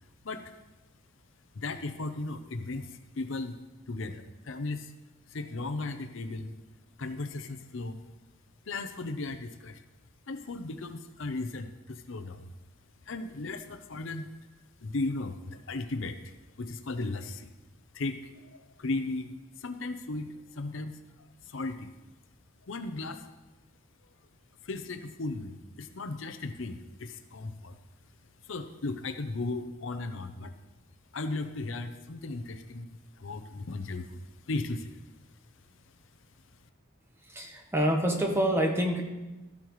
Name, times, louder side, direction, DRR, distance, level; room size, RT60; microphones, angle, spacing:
voice 1, 1.6-2.9 3.2-3.6 3.9-4.9 5.3-6.5 7.0-8.0 8.7-9.8 10.3-12.4 13.1-14.3 14.8-17.5 17.9-19.3 19.6-21.0 21.5-21.9 22.7-23.2 24.6-27.8 28.5-30.5 31.1-32.9 33.2-34.2 34.5-35.0, left 2 dB, 65° left, 9 dB, 0.6 m, -36 dB
voice 2, 37.3-39.0, equal, 10° right, 2 dB, 1.0 m, -27 dB
13.5 x 8.6 x 3.1 m, 1.1 s
head